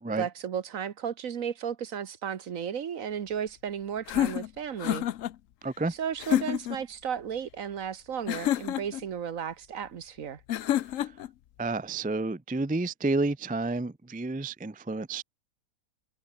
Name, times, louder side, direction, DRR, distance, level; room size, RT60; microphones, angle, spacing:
voice 1, 0.2-5.1 5.9-10.4, right 8 dB, 65° right, 1.5 m, -34 dB
sound 1, 4.1-5.3 6.2-6.8 8.3-9.0 10.5-11.3, left 12 dB, 65° left, 1.0 m, -28 dB
voice 2, 5.6-5.9 11.6-15.2, right 3 dB, 10° right, 0.3 m, -30 dB
omnidirectional pair, 1.6 m